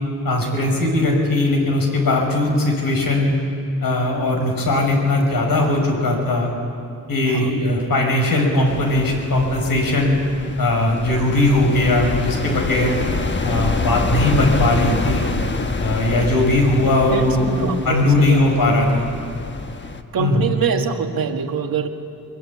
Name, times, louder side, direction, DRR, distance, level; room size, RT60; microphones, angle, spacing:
voice 1, 0.2-3.4 3.8-6.5 7.1-10.2 10.6-13.0 13.4-15.2 15.8-17.5 17.8-19.1 20.2-20.5, left 2 dB, 80° left, 1 dB, 5.8 m, -19 dB
sound 1, 8.7-20.0, left 3 dB, 35° left, 1.2 m, -27 dB
voice 2, 17.1-18.4 20.1-21.9, right 6 dB, 90° right, 5 dB, 1.8 m, -24 dB
24.0 x 23.5 x 8.6 m, 2.6 s
wide cardioid pair, 150°, 34 cm